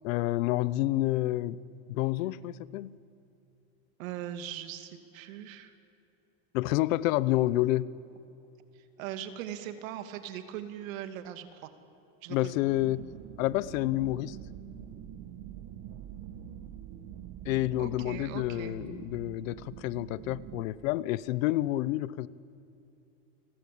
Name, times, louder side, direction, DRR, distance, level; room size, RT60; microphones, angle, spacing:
voice 1, 0.0-1.6 1.9-3.0 6.5-7.9 12.3-13.1 13.4-14.4 17.4-22.3, left 16 dB, 85° left, 0.9 m, -29 dB
voice 2, 4.0-5.7 8.7-11.7 12.2-12.5 17.8-18.7, right 10 dB, 90° right, 2.5 m, -40 dB
sound 1, 12.7-20.6, right 10 dB, 50° right, 1.7 m, -45 dB
29.5 x 23.5 x 8.6 m
supercardioid pair, 160°, 39 cm